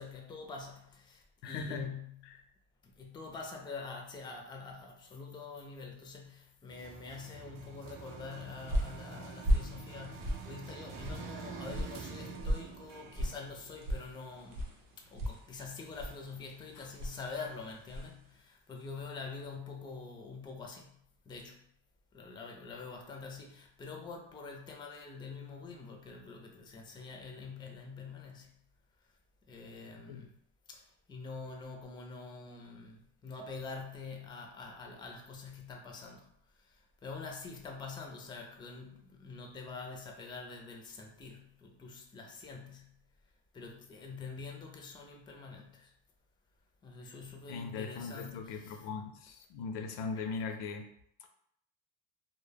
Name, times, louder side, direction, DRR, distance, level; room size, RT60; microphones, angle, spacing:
voice 1, 0.0-2.4 2.8-14.7 15.0-21.7 22.1-28.6 29.5-30.3 30.7-43.0 43.5-45.9 46.8-48.8 50.2-50.3, left 4 dB, 10° left, 2 dB, 0.3 m, -46 dB
voice 2, 1.4-1.9 2.2-2.4 16.8-16.9 29.9-30.3 47.5-50.9 51.2-51.3, left 4 dB, 85° left, 5 dB, 0.5 m, -40 dB
sound 1, 6.7-14.7, right 5 dB, 50° right, 0.5 m, -47 dB
sound 2, 8.1-18.2, equal, 90° right, 0.7 m, -37 dB
2.1 x 2.1 x 3.3 m, 0.69 s
cardioid pair, 105°, 41 cm